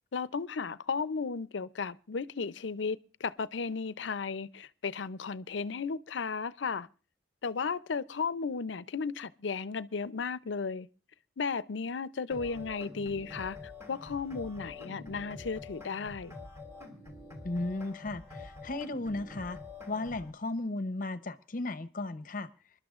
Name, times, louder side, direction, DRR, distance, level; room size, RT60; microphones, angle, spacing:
voice 1, 0.1-6.9 7.4-10.9 11.4-16.3, left 5 dB, 85° left, 0.6 m, -35 dB
sound 1, 12.3-20.3, left 3 dB, 15° right, 2.9 m, -46 dB
voice 2, 17.4-19.6 19.9-22.5, left 2 dB, 50° left, 0.8 m, -35 dB
27.5 x 12.0 x 2.5 m
head